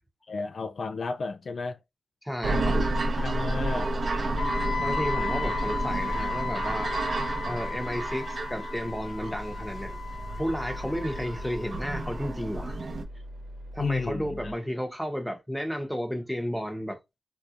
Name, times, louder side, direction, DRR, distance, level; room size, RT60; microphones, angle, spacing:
voice 1, 0.3-1.8 2.7-2.9 3.1-3.9 13.8-14.5, left 4 dB, 55° left, 0.4 m, -32 dB
voice 2, 2.2-2.8 4.8-6.9 7.4-10.0 10.4-12.8 13.7-17.0, equal, ahead, 0.9 m, -32 dB
sound 1, 2.4-13.0, right 2 dB, 50° right, 0.8 m, -31 dB
Wind instrument woodwind instrument, 4.4-12.3, left 4 dB, 35° left, 1.0 m, -35 dB
sound 2, 8.8-14.5, equal, 80° right, 1.1 m, -42 dB
3.4 x 2.8 x 2.5 m
cardioid pair, 90°, 0 cm